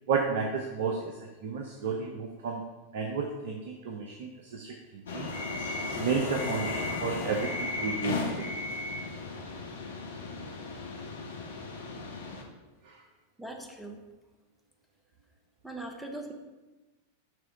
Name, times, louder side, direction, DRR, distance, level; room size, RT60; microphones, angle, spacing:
voice 1, 0.1-2.6 2.9-5.5 6.0-8.5 12.8-13.0, right 5 dB, 55° right, 3 dB, 0.5 m, -32 dB
sound 1, 5.1-12.4, left 3 dB, 65° left, 0.8 m, -35 dB
voice 2, 13.4-14.0 15.6-16.3, right 2 dB, ahead, 2 dB, 0.9 m, -40 dB
6.0 x 3.3 x 4.8 m, 1.2 s
figure-of-eight pair, 90°, 0 cm